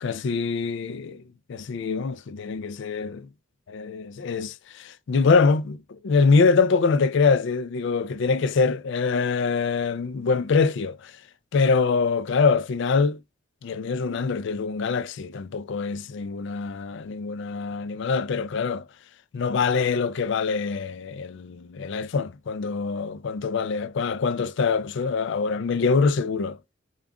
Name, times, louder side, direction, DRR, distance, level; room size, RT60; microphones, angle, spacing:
voice 1, 0.0-1.2 1.5-3.3 3.7-11.1 11.5-13.2 13.6-18.8 19.3-26.6, left 4 dB, 65° left, 0.4 m, -24 dB
7.2 x 2.4 x 2.2 m
head